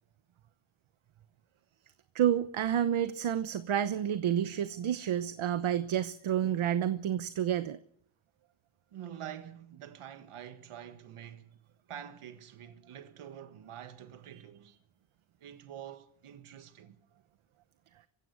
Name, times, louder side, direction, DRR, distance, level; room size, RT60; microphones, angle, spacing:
voice 1, 2.1-7.8, right 10 dB, 70° right, 1.0 m, -29 dB
voice 2, 6.4-6.8 8.9-11.6 11.9-14.8 15.4-17.0, right 10 dB, 85° right, 1.7 m, -47 dB
24.0 x 16.0 x 8.1 m
wide cardioid pair, 135°, 50 cm